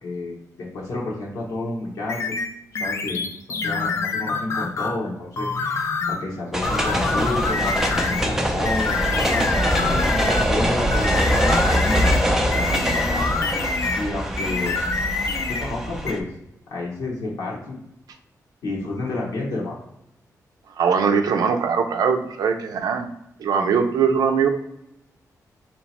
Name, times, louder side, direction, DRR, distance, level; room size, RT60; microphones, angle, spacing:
voice 1, 0.0-2.2 2.8-3.2 3.5-14.8 15.3-16.3 16.7-17.8 18.6-19.8, left 2 dB, 85° left, -5 dB, 1.1 m, -30 dB
sound 1, 2.1-5.0 5.4-6.3 6.6-8.3 8.7-10.6 10.9-14.1 14.4-15.7 16.1-16.2, left 4 dB, 50° left, 0.4 m, -26 dB
sound 2, 6.5-16.2, equal, 5° right, 0.5 m, -23 dB
voice 2, 20.8-23.1 23.4-24.5, right 6 dB, 80° right, 6 dB, 0.5 m, -21 dB
3.2 x 2.9 x 4.2 m, 0.81 s
wide cardioid pair, 165°, 6 cm